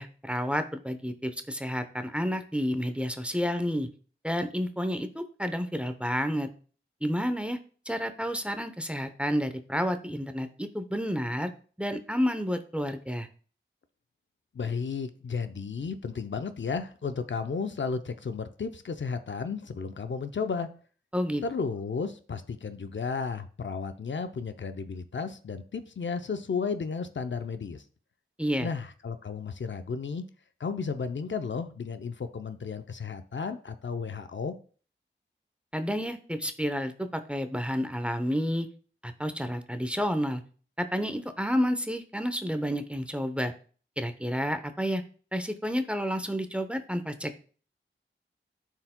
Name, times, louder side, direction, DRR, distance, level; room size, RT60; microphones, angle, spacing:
voice 1, 0.0-3.9 4.2-6.5 7.0-7.6 7.9-11.5 11.8-13.3 21.1-21.4 28.4-28.7 35.7-38.7 39.0-40.4 40.8-43.5 44.0-45.0 45.3-47.4, equal, 5° right, 8 dB, 0.7 m, -30 dB
voice 2, 14.5-20.7 21.4-27.8 28.6-30.2 30.6-34.6, left 5 dB, 65° left, 9 dB, 0.6 m, -33 dB
13.5 x 4.6 x 2.2 m, 0.42 s
wide cardioid pair, 50°, 21 cm